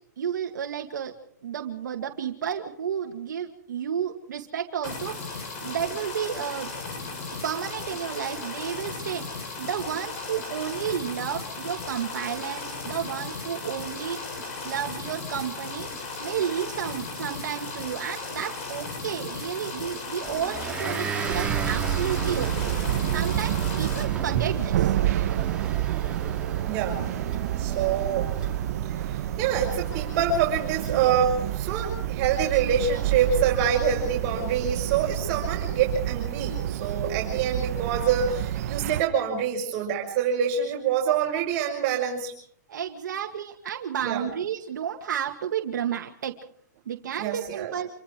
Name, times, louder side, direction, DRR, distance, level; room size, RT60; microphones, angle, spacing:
voice 1, 0.2-1.1 1.4-5.2 5.6-6.7 7.4-9.2 9.6-14.2 14.6-15.9 16.2-22.7 23.1-25.0 42.7-46.4 46.9-47.9, right 8 dB, 80° right, 3 dB, 2.2 m, -31 dB
sound 1, 4.8-24.0, left 3 dB, 45° left, 7.6 m, -36 dB
Motor vehicle (road) / Engine, 20.2-34.4, right 6 dB, 10° right, 2.7 m, -38 dB
sound 2, 21.3-39.0, right 11 dB, 55° right, 1.4 m, -29 dB
voice 2, 26.6-27.0 27.6-28.3 28.8-42.3 44.0-44.3 47.2-47.7, right 7 dB, 35° right, -2 dB, 5.7 m, -26 dB
27.5 x 24.0 x 4.7 m, 0.63 s
hypercardioid pair, 155°, 10 cm